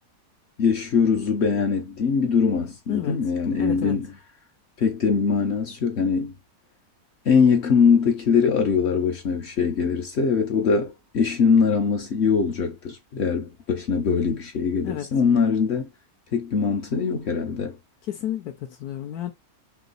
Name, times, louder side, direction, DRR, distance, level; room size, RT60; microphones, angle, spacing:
voice 1, 0.6-4.1 4.8-6.4 7.2-15.9 16.3-17.8, left 5 dB, 60° left, 0.7 m, -22 dB
voice 2, 3.6-4.0 14.8-15.1 18.1-19.3, left 11 dB, 75° left, 1.1 m, -30 dB
3.1 x 2.9 x 3.9 m
omnidirectional pair, 1.7 m